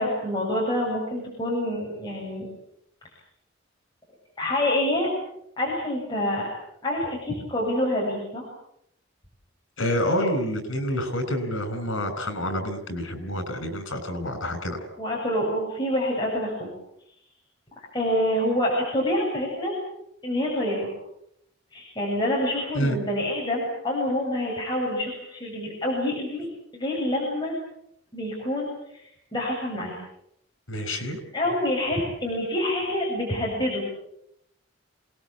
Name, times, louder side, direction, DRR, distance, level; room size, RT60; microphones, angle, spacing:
voice 1, 0.0-2.5 4.4-5.1 5.6-6.5 6.8-8.5 15.0-16.7 17.8-19.8 20.2-20.9 21.7-26.5 26.7-27.5 28.1-30.0 31.3-33.9, left 1 dB, 20° left, -3 dB, 7.8 m, -27 dB
voice 2, 9.8-14.8 22.8-23.0 30.7-31.2, equal, 80° left, 11 dB, 5.9 m, -28 dB
28.0 x 20.0 x 8.5 m, 0.75 s
head